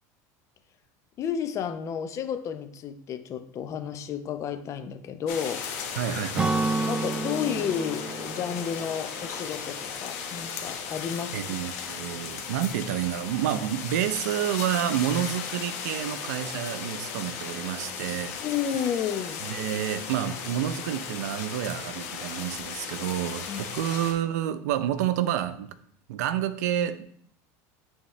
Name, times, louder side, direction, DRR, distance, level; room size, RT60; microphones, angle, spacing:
voice 1, 1.2-5.9 6.9-11.4 18.4-19.4 23.5-23.6, left 8 dB, 35° left, 9 dB, 0.6 m, -32 dB
sound 1, 5.3-24.1, left 7 dB, 85° left, 1.1 m, -36 dB
voice 2, 6.0-6.6 11.3-18.4 19.4-25.7 26.1-27.1, right 11 dB, 85° right, 12 dB, 0.5 m, -29 dB
Acoustic guitar / Strum, 6.4-10.0, right 3 dB, 10° right, 0.3 m, -31 dB
9.4 x 3.6 x 3.2 m, 0.62 s
supercardioid pair, 130°, 9 cm